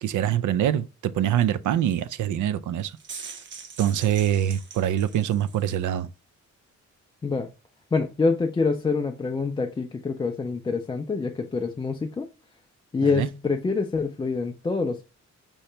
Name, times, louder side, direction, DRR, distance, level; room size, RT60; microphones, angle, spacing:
voice 1, 0.0-2.9 3.2-3.3 3.8-6.1 13.1-13.3, right 10 dB, 90° right, 0.5 m, -24 dB
sound 1, 2.8-5.9, right 5 dB, 40° right, 0.6 m, -42 dB
voice 2, 7.9-12.3 12.9-15.0, left 4 dB, 15° left, 0.3 m, -26 dB
5.4 x 2.9 x 3.2 m
wide cardioid pair, 180°, 30 cm